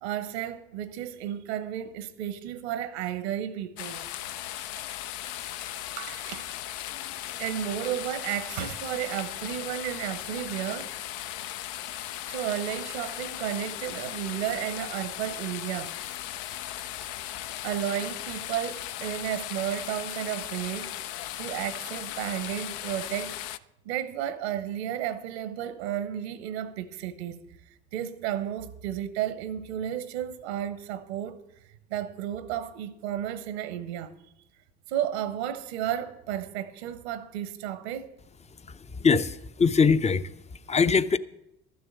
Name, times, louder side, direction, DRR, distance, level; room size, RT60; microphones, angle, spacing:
voice 1, 0.0-4.1 6.0-6.5 7.4-10.9 12.0-15.9 17.6-20.9 21.4-23.3 23.8-27.4 27.9-31.4 31.9-34.1 34.9-38.2, right 11 dB, 85° right, 1.0 m, -33 dB
sound 1, 3.8-23.6, left 13 dB, 70° left, 0.6 m, -37 dB
voice 2, 38.6-40.3 40.7-41.2, left 5 dB, 20° left, 0.6 m, -23 dB
12.5 x 6.9 x 8.2 m
hypercardioid pair, 65°, 31 cm